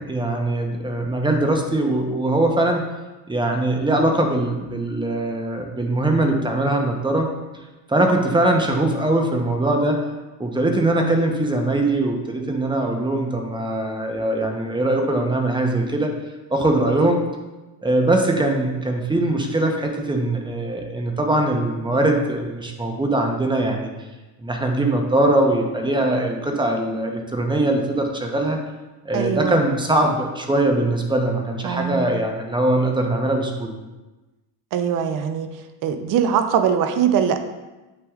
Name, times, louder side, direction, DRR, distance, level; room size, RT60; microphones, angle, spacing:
voice 1, 0.0-2.8 3.3-7.3 7.9-10.0 10.4-16.1 16.5-17.3 17.8-23.9 24.4-28.6 29.0-33.8, right 1 dB, 10° right, 3 dB, 0.8 m, -21 dB
voice 2, 29.1-29.6 31.6-32.1 34.7-35.5 35.8-37.4, right 8 dB, 45° right, 9 dB, 0.6 m, -21 dB
7.7 x 6.1 x 2.4 m, 1.1 s
supercardioid pair, 110°, 47 cm